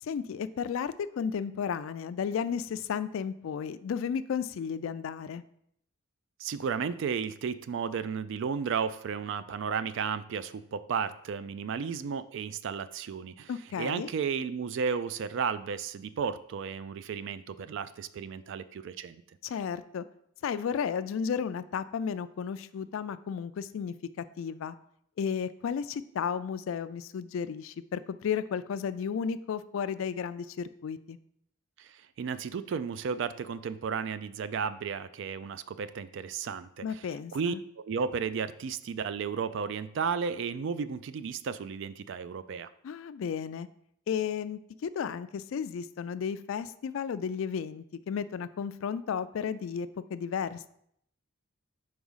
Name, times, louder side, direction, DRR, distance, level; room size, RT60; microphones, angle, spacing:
voice 1, 0.0-5.4 13.5-14.1 19.4-20.0 20.4-24.7 25.2-31.2 36.8-37.6 42.8-43.7 44.1-50.7, left 7 dB, 65° left, 14 dB, 0.3 m, -33 dB
voice 2, 6.4-13.5 13.8-19.2 31.8-42.7, right 6 dB, 55° right, 14 dB, 0.3 m, -33 dB
4.8 x 3.9 x 5.5 m, 0.71 s
head